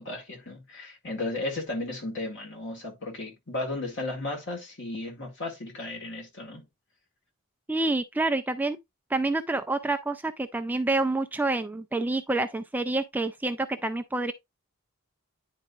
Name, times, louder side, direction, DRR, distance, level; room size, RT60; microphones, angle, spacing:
voice 1, 0.0-6.7, left 2 dB, 55° left, 2.0 m, -34 dB
voice 2, 7.7-8.8 9.1-14.3, right 2 dB, 10° right, 0.3 m, -28 dB
10.0 x 4.1 x 2.3 m
head